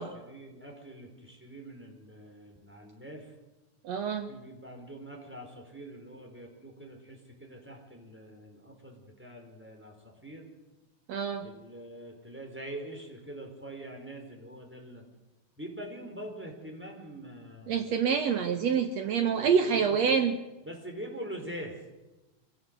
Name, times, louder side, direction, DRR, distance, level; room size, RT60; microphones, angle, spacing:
voice 1, 0.0-3.3 4.3-10.5 11.4-15.0 15.6-17.9 19.4-20.2 20.6-21.8, right 1 dB, 5° right, 1 dB, 4.5 m, -44 dB
voice 2, 3.8-4.3 11.1-11.5 17.7-20.4, right 6 dB, 65° right, 8 dB, 2.1 m, -27 dB
25.5 x 17.0 x 7.8 m, 1.1 s
omnidirectional pair, 3.7 m